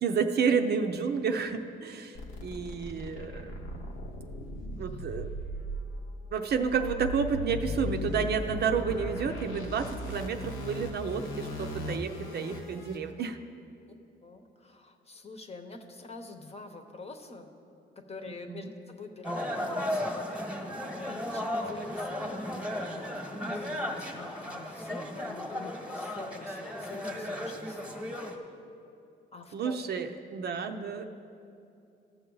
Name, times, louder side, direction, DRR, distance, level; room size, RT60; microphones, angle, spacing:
voice 1, 0.0-4.1 4.8-5.3 6.3-13.4 18.5-18.7 29.5-31.0, right 6 dB, 55° right, 6 dB, 0.6 m, -31 dB
sound 1, 2.1-13.0, left 1 dB, 80° left, 1.0 m, -38 dB
voice 2, 14.2-17.5 18.0-22.5 22.9-28.6 29.3-29.8, left 3 dB, 30° left, 5 dB, 1.0 m, -46 dB
sound 2, 19.2-28.4, left 1 dB, 5° right, 1.3 m, -35 dB
15.5 x 6.6 x 3.9 m, 2.6 s
cardioid pair, 90°, 20 cm